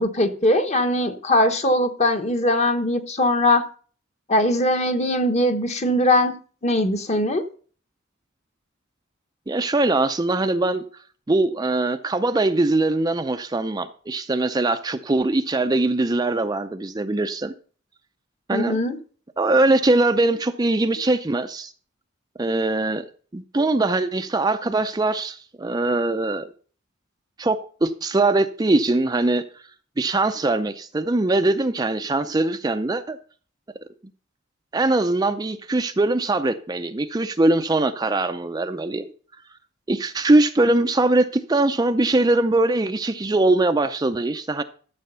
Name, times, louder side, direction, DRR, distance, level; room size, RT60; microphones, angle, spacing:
voice 1, 0.0-3.6 4.3-6.3 6.6-7.4 18.5-19.0, left 1 dB, 35° left, 1.1 m, -20 dB
voice 2, 9.5-10.8 11.3-17.5 18.5-18.8 19.4-21.7 22.4-23.1 23.3-26.5 27.4-29.4 30.0-33.2 34.7-39.1 39.9-44.6, right 2 dB, 20° right, 0.5 m, -21 dB
13.0 x 6.9 x 5.5 m
head